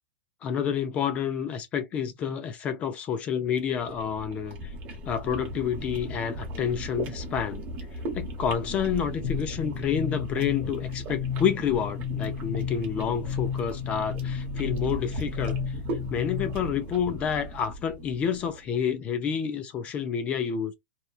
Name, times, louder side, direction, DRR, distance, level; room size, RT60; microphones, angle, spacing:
voice 1, 0.4-4.7 5.1-7.6 8.1-15.8 16.1-20.7, left 8 dB, 20° left, 0.3 m, -29 dB
sound 1, 3.5-18.8, right 1 dB, 30° right, 1.1 m, -37 dB
sound 2, 9.2-16.8, left 8 dB, 75° left, 0.6 m, -33 dB
2.8 x 2.2 x 2.3 m
supercardioid pair, 165°, 6 cm